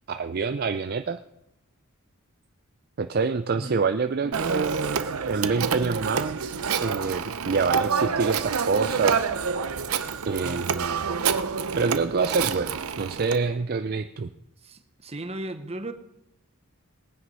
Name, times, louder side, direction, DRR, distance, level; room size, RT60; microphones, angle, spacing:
voice 1, 0.1-1.2 3.0-6.4 6.8-9.2 10.3-11.2 11.8-14.3, right 4 dB, 45° right, 0.4 m, -27 dB
Telephone, 4.3-13.4, right 6 dB, 75° right, 0.7 m, -27 dB
voice 2, 14.6-15.9, right 1 dB, 30° right, 0.9 m, -36 dB
19.0 x 9.4 x 5.5 m
head